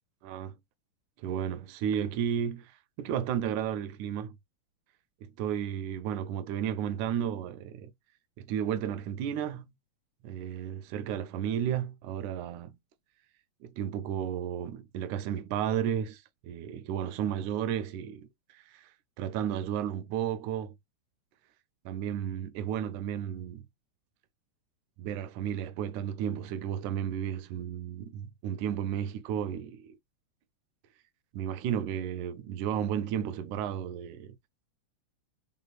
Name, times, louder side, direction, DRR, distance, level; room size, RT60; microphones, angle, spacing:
voice 1, 0.2-0.5 1.2-2.7 3.0-4.4 5.2-7.9 8.4-9.7 10.2-12.8 13.6-18.3 18.5-18.9 19.2-20.8 21.9-23.6 25.0-30.0 31.3-34.4, right 9 dB, 80° right, 1.9 m, -33 dB
4.5 x 3.6 x 2.3 m
omnidirectional pair, 3.4 m